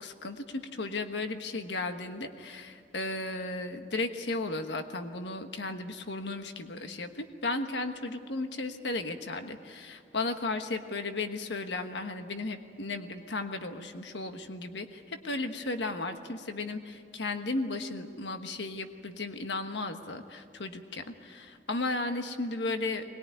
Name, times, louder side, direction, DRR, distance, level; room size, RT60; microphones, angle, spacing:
voice 1, 0.0-23.0, left 2 dB, 75° left, 7 dB, 1.3 m, -35 dB
21.5 x 20.5 x 9.5 m, 2.2 s
head